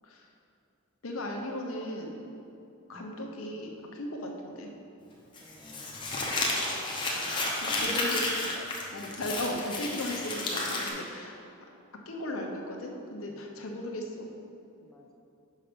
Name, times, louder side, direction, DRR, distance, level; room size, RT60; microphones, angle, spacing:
voice 1, 1.0-2.2 2.9-4.7 7.7-8.2 8.9-11.4 12.1-14.3, left 1 dB, 80° left, 1 dB, 0.9 m, -36 dB
voice 2, 2.9-3.3 5.4-6.4 7.2-8.6 9.0-9.4 13.3-13.8 14.8-15.2, equal, ahead, -2 dB, 0.5 m, -49 dB
Crumpling crinkling, 5.4-10.9, left 2 dB, 25° left, 0.9 m, -32 dB
5.7 x 5.7 x 5.1 m, 2.7 s
head